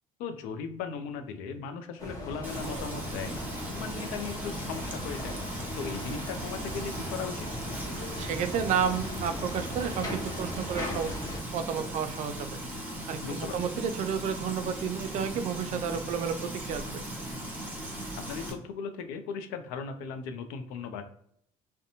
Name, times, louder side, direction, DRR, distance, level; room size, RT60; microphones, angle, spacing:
voice 1, 0.2-7.5 13.2-13.7 18.3-21.0, left 6 dB, 85° left, 8 dB, 0.4 m, -38 dB
sound 1, 2.0-11.4, left 1 dB, 25° left, 0.8 m, -38 dB
Frying (food), 2.4-18.5, right 1 dB, 10° right, 0.8 m, -38 dB
voice 2, 8.0-11.1 11.5-12.5 13.1-17.0, right 7 dB, 60° right, 9 dB, 0.4 m, -31 dB
2.6 x 2.1 x 2.7 m, 0.68 s
supercardioid pair, 90°, 14 cm